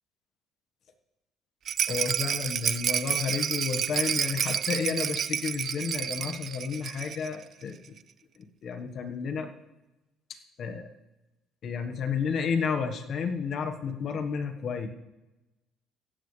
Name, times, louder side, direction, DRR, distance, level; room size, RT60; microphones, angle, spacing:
Rattle, 1.7-7.4 7.6-7.7 8.0-8.1, right 8 dB, 40° right, 0.4 m, -30 dB
voice 1, 1.9-7.8 8.4-9.5 10.3-10.9 11.6-14.9, left 6 dB, 45° left, 6 dB, 1.4 m, -31 dB
16.5 x 14.0 x 3.3 m, 1.0 s
cardioid pair, 140°, 0 cm